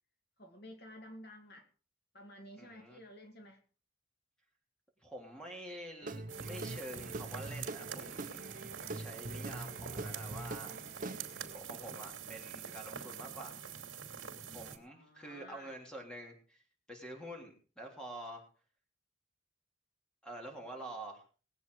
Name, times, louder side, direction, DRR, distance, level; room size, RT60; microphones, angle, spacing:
voice 1, 0.4-1.7 2.1-3.6 14.8-15.8, equal, 50° left, 4 dB, 2.1 m, -52 dB
voice 2, 2.6-3.0 5.0-8.4 8.9-11.0 11.5-13.6 14.5-16.6 16.9-18.4 20.2-21.2, right 1 dB, 5° left, 1 dB, 3.3 m, -47 dB
Guitar / Drum, 6.0-11.6, right 2 dB, 40° right, 0.8 m, -43 dB
sound 1, 6.3-14.8, right 7 dB, 65° right, 2.8 m, -46 dB
20.0 x 8.2 x 4.8 m, 0.38 s
head